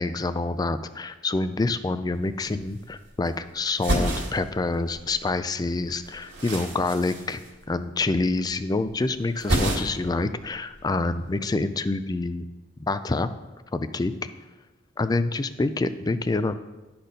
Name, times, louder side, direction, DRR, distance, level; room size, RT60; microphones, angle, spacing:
voice 1, 0.0-7.4 7.7-12.4 12.8-13.3 13.7-14.1 15.0-16.6, left 3 dB, 20° left, 11 dB, 0.4 m, -27 dB
sound 1, 2.1-2.2 2.5-3.3 3.7-5.3 5.6-8.1 8.4-8.9 9.1-10.2 10.5-11.3, right 1 dB, 60° right, 2.2 m, -30 dB
11.5 x 4.3 x 5.1 m, 1.1 s
head